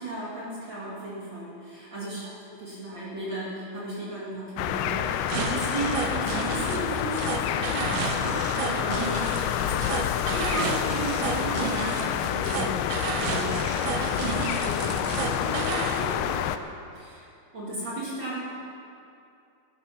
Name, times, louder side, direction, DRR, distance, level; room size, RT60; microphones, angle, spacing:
voice 1, 0.0-9.2 9.6-16.3 16.9-17.2 17.5-18.4, right 2 dB, 45° right, -7 dB, 1.5 m, -35 dB
sound 1, 4.6-16.6, left 10 dB, 85° left, 2.6 m, -28 dB
sound 2, 5.3-16.1, right 7 dB, 85° right, 3.3 m, -33 dB
14.0 x 11.0 x 5.8 m, 2.5 s
omnidirectional pair, 5.8 m